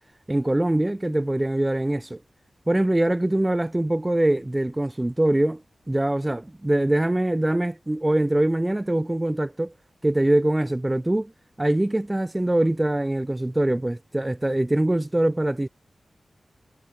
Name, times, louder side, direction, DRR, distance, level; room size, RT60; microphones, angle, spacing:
voice 1, 0.3-2.2 2.7-5.6 5.9-9.7 10.0-11.3 11.6-15.7, right 1 dB, 20° right, 1.5 m, -23 dB
cardioid pair, 60°, 0 cm